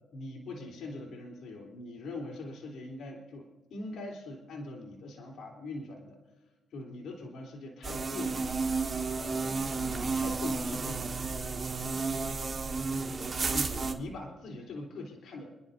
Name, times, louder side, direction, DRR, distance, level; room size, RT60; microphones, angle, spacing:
voice 1, 0.1-6.2 6.7-8.6 9.2-11.1 13.5-15.5, left 2 dB, 65° left, -1 dB, 3.6 m, -42 dB
sound 1, 7.8-13.9, right 4 dB, 30° right, 1.5 m, -32 dB
29.0 x 10.5 x 2.7 m, 1.1 s
cardioid pair, 90°, 0 cm